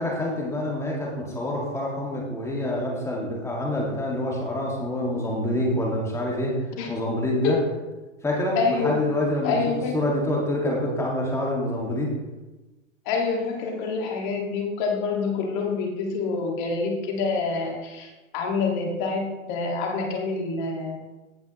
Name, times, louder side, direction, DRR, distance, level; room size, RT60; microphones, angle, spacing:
voice 1, 0.0-6.6 6.9-7.6 8.2-12.1, left 1 dB, 5° left, -2 dB, 1.9 m, -26 dB
voice 2, 8.6-8.9 9.4-10.2 13.1-21.0, left 4 dB, 35° left, 1 dB, 2.0 m, -27 dB
16.0 x 5.4 x 3.1 m, 1.1 s
hypercardioid pair, 130°, 40 cm